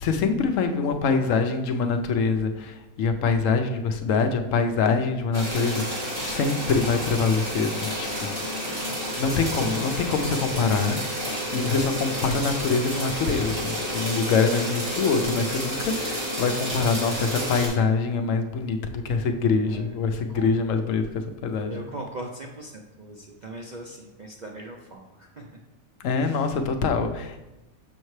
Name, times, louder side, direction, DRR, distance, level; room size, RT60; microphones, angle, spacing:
voice 1, 0.0-8.3 9.2-11.0 11.5-18.8 19.0-21.0 21.4-21.8 26.0-27.5, left 4 dB, 70° left, 6 dB, 0.9 m, -24 dB
voice 2, 0.8-1.3 8.6-8.8 19.7-19.9 20.3-20.5 21.7-25.4 26.2-26.6, right 1 dB, 55° right, 0 dB, 0.5 m, -40 dB
sound 1, 5.3-17.7, equal, 30° right, 2.4 m, -30 dB
6.4 x 5.4 x 3.1 m, 0.99 s
omnidirectional pair, 1.5 m